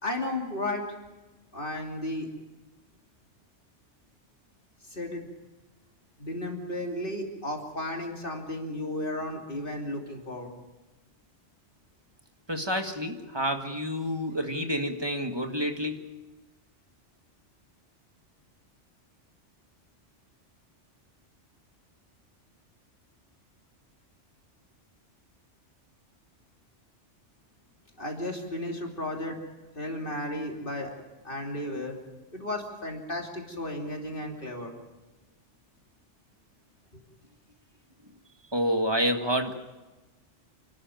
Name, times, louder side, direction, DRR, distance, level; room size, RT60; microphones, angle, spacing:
voice 1, 0.0-0.8 1.5-2.3 4.9-5.3 6.2-10.5 28.0-29.4 29.7-30.9 31.2-32.0 32.3-34.7 36.9-37.0, left 1 dB, 45° left, 1 dB, 3.1 m, -34 dB
voice 2, 12.5-16.0 38.5-39.5, equal, 20° right, 4 dB, 1.8 m, -28 dB
28.0 x 12.5 x 9.3 m, 1.1 s
omnidirectional pair, 1.2 m